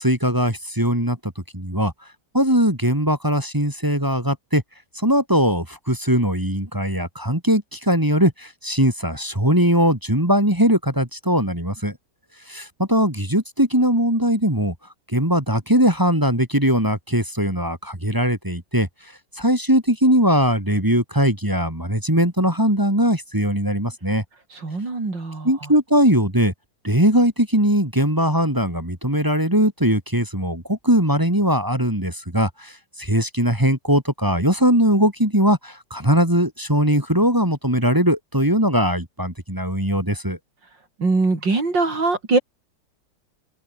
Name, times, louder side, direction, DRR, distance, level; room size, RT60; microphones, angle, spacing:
voice 1, 0.0-1.9 2.3-4.6 4.9-12.0 12.5-14.7 15.1-18.9 19.4-24.2 25.4-26.5 26.8-40.4, equal, 10° right, 2.9 m, -20 dB
voice 2, 24.5-25.7 41.0-42.4, right 3 dB, 85° right, 5.5 m, -22 dB
omnidirectional pair, 1.9 m